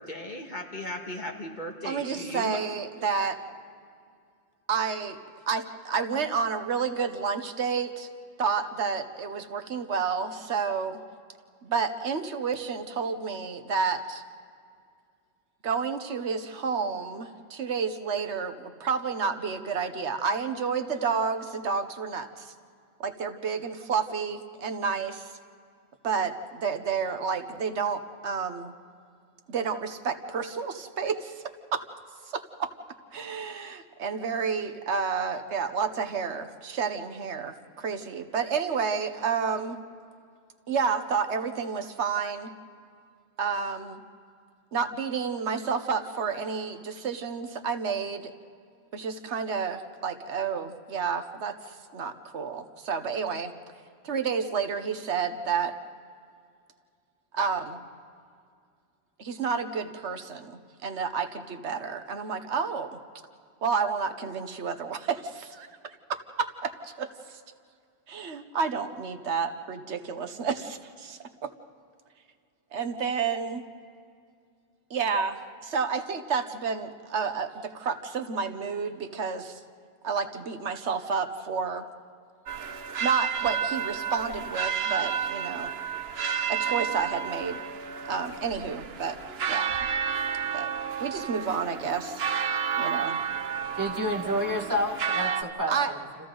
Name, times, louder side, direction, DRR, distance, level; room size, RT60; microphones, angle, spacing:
voice 1, 0.0-2.6, left 1 dB, 45° left, 1 dB, 2.0 m, -37 dB
voice 2, 1.8-3.4 4.7-5.2 5.5-8.1 8.4-11.0 11.6-14.2 15.6-22.5 23.0-25.3 26.0-28.7 29.5-31.4 31.7-31.8 32.3-32.7 33.1-39.8 40.7-42.5 43.4-44.0 44.7-48.3 48.9-53.5 54.0-55.7 57.3-57.8 59.2-63.0 63.6-67.4 68.1-71.5 72.7-73.7 74.9-79.6 80.0-81.8 83.0-85.7 86.5-87.6 88.1-89.2 89.5-89.7 90.5-90.7 91.0-92.2 92.8-93.2 95.7-95.9, right 5 dB, 90° right, 8 dB, 1.4 m, -30 dB
sound 1, 82.5-95.4, right 7 dB, 65° right, 1.1 m, -31 dB
voice 3, 93.7-96.3, equal, 15° right, 0 dB, 2.2 m, -30 dB
29.5 x 28.5 x 3.9 m, 2.3 s
omnidirectional pair, 1.1 m